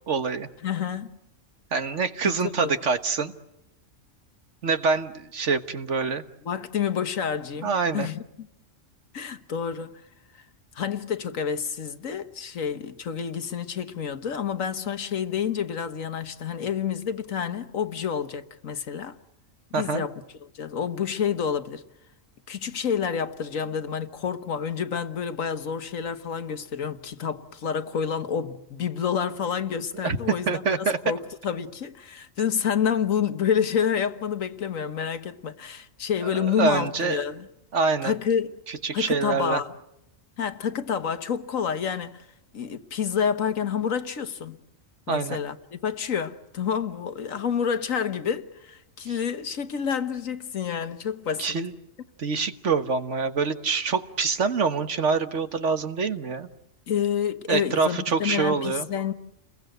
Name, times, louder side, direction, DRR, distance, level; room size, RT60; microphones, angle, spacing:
voice 1, 0.1-0.5 1.7-3.3 4.6-6.2 7.6-8.1 19.7-20.0 30.0-30.2 30.5-31.0 36.2-37.2 37.7-38.1 38.7-39.6 45.1-45.4 51.4-51.7 52.2-56.5 57.5-58.9, right 5 dB, 65° right, 1.6 m, -25 dB
voice 2, 0.6-1.1 2.2-2.8 6.4-8.2 9.1-10.0 10.8-19.2 19.7-21.8 22.5-37.5 38.0-38.6 38.9-39.7 40.4-42.3 42.5-44.6 45.1-51.6 56.9-59.1, left 7 dB, 80° left, 1.7 m, -28 dB
29.5 x 22.0 x 8.0 m
omnidirectional pair, 1.4 m